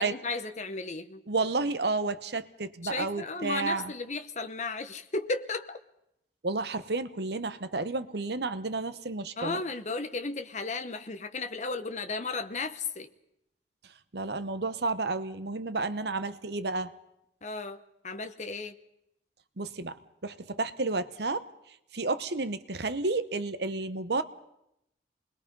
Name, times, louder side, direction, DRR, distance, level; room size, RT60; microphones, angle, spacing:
voice 1, 0.0-1.2 2.8-5.8 9.4-13.1 17.4-18.8, left 3 dB, 40° left, 8 dB, 1.0 m, -34 dB
voice 2, 1.3-3.9 6.4-9.6 14.1-16.9 19.6-20.0 20.2-21.5 21.9-24.2, right 3 dB, 60° right, 12 dB, 0.9 m, -31 dB
26.5 x 21.0 x 5.4 m, 0.81 s
head